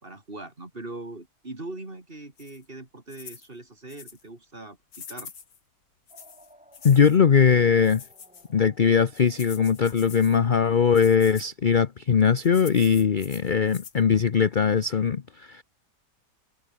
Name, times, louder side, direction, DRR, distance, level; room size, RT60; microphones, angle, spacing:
voice 1, 0.0-5.3, right 2 dB, 30° right, 3.9 m, -41 dB
sound 1, 2.4-2.6 3.1-3.5 3.9-4.2 4.9-5.6 6.1-7.2 7.8-8.5 9.1-10.4 10.9-11.5 12.4-14.0, left 6 dB, 90° left, 2.7 m, -45 dB
sound 2, 6.1-10.6, equal, 5° right, 7.1 m, -58 dB
voice 2, 6.8-8.0 8.5-15.6, left 6 dB, 45° left, 0.7 m, -20 dB
omnidirectional pair, 1.8 m